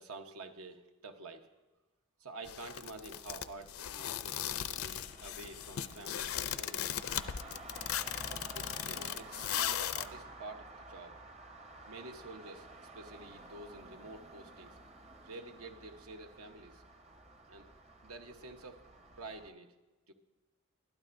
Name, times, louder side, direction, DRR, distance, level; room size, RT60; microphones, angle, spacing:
voice 1, 0.0-1.5 2.2-6.9 8.3-11.2 11.9-14.8 15.2-16.8 17.5-17.7 18.0-18.8 19.2-19.7 20.1-20.2, right 2 dB, 80° right, 6 dB, 1.0 m, -49 dB
sound 1, 2.5-10.1, left 10 dB, 75° left, 0.5 m, -37 dB
Traffic noise roadway noise, 4.5-19.5, right 2 dB, 30° right, 0.7 m, -52 dB
21.0 x 12.5 x 2.6 m, 1.2 s
head